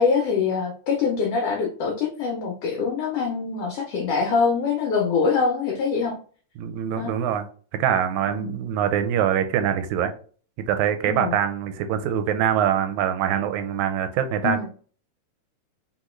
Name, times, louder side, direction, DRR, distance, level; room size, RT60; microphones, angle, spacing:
voice 1, 0.0-6.2 7.0-7.1 8.3-8.6 11.1-11.4 14.4-14.7, left 5 dB, 80° left, 0 dB, 1.4 m, -24 dB
voice 2, 6.6-7.5 7.7-10.1 10.7-14.7, right 9 dB, 80° right, 9 dB, 1.8 m, -24 dB
4.0 x 3.7 x 3.0 m, 0.43 s
omnidirectional pair, 3.5 m